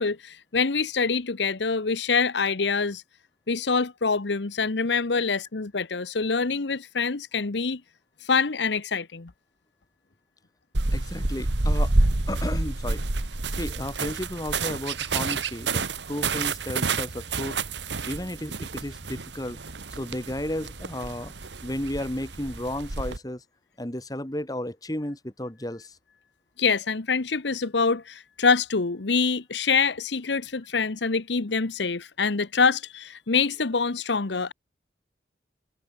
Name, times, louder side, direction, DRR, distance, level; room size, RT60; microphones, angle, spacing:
voice 1, 0.0-3.0 3.5-7.8 8.2-9.3 26.6-34.5, left 5 dB, 85° left, 1.0 m, -25 dB
sound 1, 10.7-23.2, right 3 dB, 85° right, 1.8 m, -29 dB
voice 2, 10.9-11.9 12.3-17.6 18.1-19.6 20.0-21.3 21.6-23.4 23.8-26.0, left 1 dB, 20° left, 2.0 m, -33 dB
head